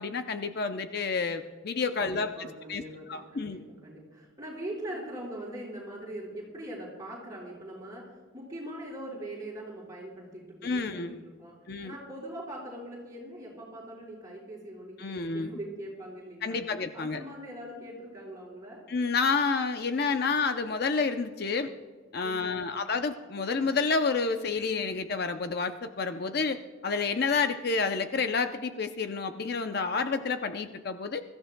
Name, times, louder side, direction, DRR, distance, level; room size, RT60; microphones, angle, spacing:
voice 1, 0.0-2.3 2.7-2.8 3.1-3.6 10.6-11.1 11.7-12.0 15.0-15.5 16.4-17.2 18.9-21.7 22.1-26.6 26.8-31.2, left 4 dB, 50° left, 8 dB, 0.6 m, -29 dB
voice 2, 1.9-11.5 11.8-16.6 16.9-18.9 22.2-22.8, right 1 dB, 15° right, -5 dB, 4.8 m, -42 dB
23.0 x 14.5 x 2.2 m, 1.4 s
head